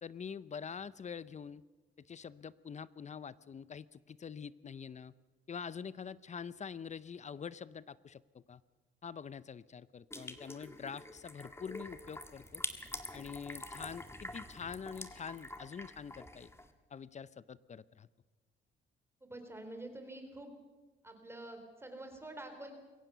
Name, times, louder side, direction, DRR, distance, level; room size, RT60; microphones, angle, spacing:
voice 1, 0.0-1.6 2.0-5.1 5.5-8.6 9.0-12.6 13.1-16.5 16.9-18.1, left 6 dB, 35° left, 18 dB, 0.6 m, -45 dB
sound 1, 10.1-16.7, left 2 dB, 15° left, 1.8 m, -46 dB
voice 2, 19.2-20.5 21.0-22.7, right 1 dB, 10° right, 5 dB, 3.9 m, -47 dB
22.0 x 17.0 x 6.9 m, 1.2 s
cardioid pair, 90°, 20 cm